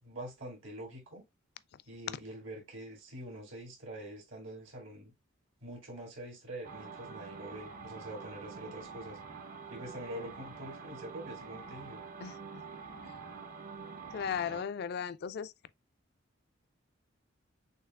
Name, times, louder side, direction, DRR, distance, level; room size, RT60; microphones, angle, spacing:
voice 1, 0.0-1.2 1.9-5.1 5.6-9.2 9.7-12.0, right 1 dB, 75° right, 2.2 m, -45 dB
sound 1, 6.6-14.6, right 5 dB, 45° right, 0.6 m, -46 dB
voice 2, 14.1-15.5, left 7 dB, 55° left, 0.3 m, -36 dB
6.5 x 2.8 x 2.3 m
head